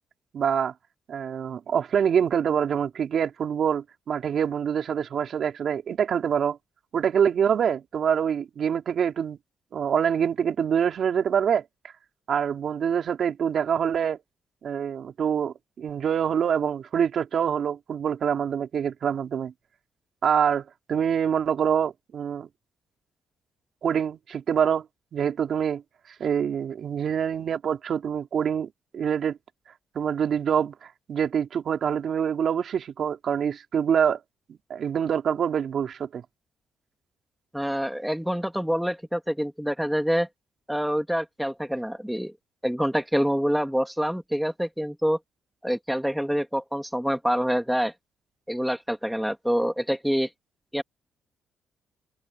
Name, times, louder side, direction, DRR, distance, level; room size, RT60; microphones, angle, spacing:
voice 1, 0.3-0.7 1.1-6.6 6.9-9.4 9.7-11.6 12.3-14.2 14.6-19.5 20.2-22.5 23.8-24.8 25.1-25.8 26.2-29.4 30.0-34.2 34.5-36.2, right 8 dB, 60° right, 3.5 m, -25 dB
voice 2, 37.5-40.3 40.7-42.3 42.6-45.2 45.6-47.9 48.5-50.3 50.7-50.8, equal, ahead, 2.7 m, -26 dB
open air
cardioid pair, 90°, 0 cm